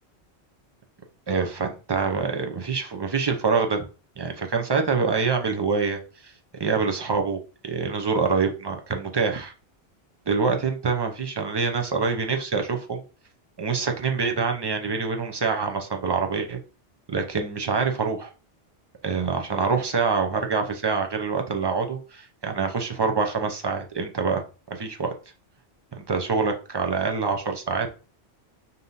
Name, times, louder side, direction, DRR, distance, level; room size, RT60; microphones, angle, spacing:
voice 1, 1.3-3.9 4.2-6.3 6.6-9.5 10.3-13.0 13.6-16.6 17.1-18.3 19.0-24.4 24.7-25.1 26.0-28.0, right 5 dB, 40° right, 4 dB, 0.4 m, -25 dB
5.2 x 2.8 x 2.6 m, 0.34 s
omnidirectional pair, 1.1 m